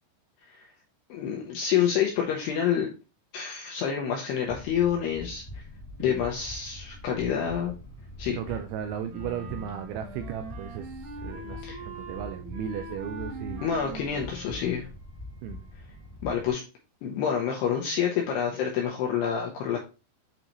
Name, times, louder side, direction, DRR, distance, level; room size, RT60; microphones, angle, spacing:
voice 1, 1.1-2.9 3.3-5.6 6.0-7.7 8.2-8.4 11.6-11.8 13.6-14.9 16.2-16.6 17.0-19.8, left 8 dB, 80° left, 0 dB, 2.4 m, -28 dB
sound 1, 4.5-16.5, left 1 dB, 25° left, 1.2 m, -44 dB
voice 2, 8.3-13.7 13.9-14.0 15.4-15.6, right 9 dB, 85° right, 7 dB, 2.7 m, -36 dB
Wind instrument woodwind instrument, 9.1-15.0, right 2 dB, 70° right, 2.0 m, -42 dB
9.1 x 3.9 x 3.0 m, 0.31 s
omnidirectional pair, 5.8 m